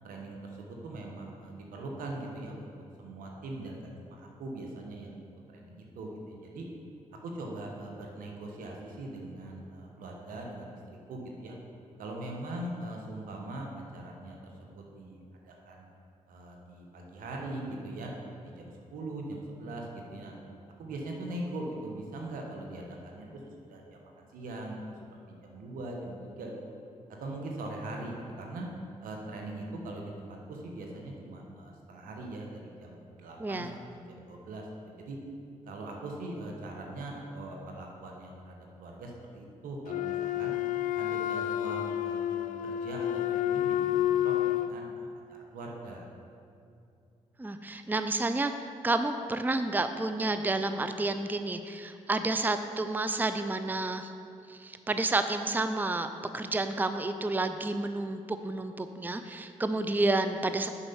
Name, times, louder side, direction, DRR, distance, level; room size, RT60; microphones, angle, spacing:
voice 1, 0.0-2.7 3.0-5.1 5.5-6.7 7.2-11.6 12.0-15.2 15.4-15.9 16.3-18.1 18.4-20.3 20.8-23.3 23.7-24.8 25.4-26.6 27.2-28.7 29.0-34.6 35.0-35.2 35.7-40.5 40.9-46.0, right 2 dB, 85° right, 0 dB, 1.3 m, -41 dB
voice 2, 33.4-33.7 47.4-48.5 48.8-54.1 54.5-56.1 56.3-60.7, right 2 dB, 15° right, 9 dB, 0.5 m, -30 dB
Wind instrument woodwind instrument, 39.9-44.8, left 12 dB, 70° left, 0.4 m, -29 dB
7.1 x 5.4 x 7.1 m, 2.5 s
supercardioid pair, 45°, 14 cm